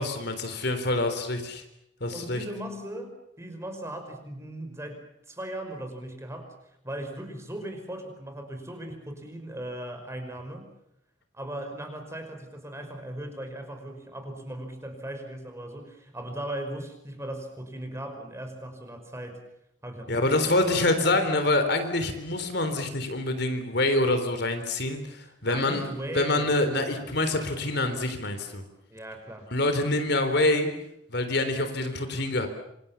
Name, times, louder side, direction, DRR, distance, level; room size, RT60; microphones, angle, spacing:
voice 1, 0.0-1.6 2.0-2.4 20.1-25.9 26.1-28.6 29.5-30.7 31.1-32.5, left 2 dB, 60° left, 8 dB, 3.7 m, -26 dB
voice 2, 2.1-6.5 6.8-10.7 11.3-19.4 19.8-20.6 25.5-27.2 28.9-29.5, right 1 dB, 15° right, 6 dB, 5.4 m, -38 dB
27.5 x 26.0 x 7.2 m, 0.81 s
head